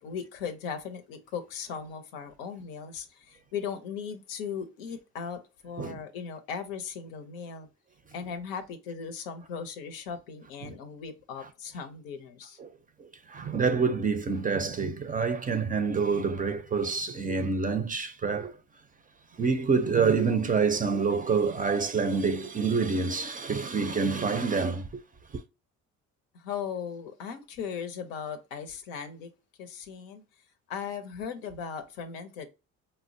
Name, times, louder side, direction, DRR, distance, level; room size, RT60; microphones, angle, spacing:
voice 1, 0.0-7.7 8.1-12.6 26.3-29.3 29.6-30.2 30.7-32.5, left 6 dB, 85° left, 0.6 m, -38 dB
voice 2, 13.0-18.6 19.4-25.0 25.3-25.4, right 5 dB, 20° right, 0.4 m, -27 dB
4.3 x 2.0 x 2.5 m
hypercardioid pair, 65°, 38 cm